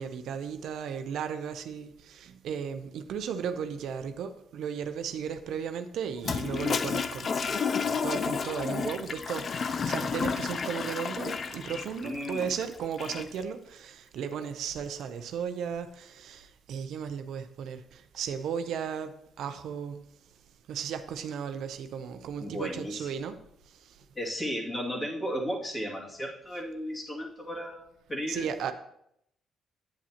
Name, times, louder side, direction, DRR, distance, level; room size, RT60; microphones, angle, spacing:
voice 1, 0.0-7.5 8.0-20.0 20.7-23.4 23.7-24.0 28.3-28.7, right 7 dB, 75° right, 0.6 m, -35 dB
Toilet flush, 6.2-13.4, left 5 dB, 45° left, 0.5 m, -31 dB
voice 2, 12.0-12.5 22.4-23.1 24.2-28.6, equal, 25° left, 2.3 m, -35 dB
8.9 x 8.4 x 2.9 m
cardioid pair, 90°, 0 cm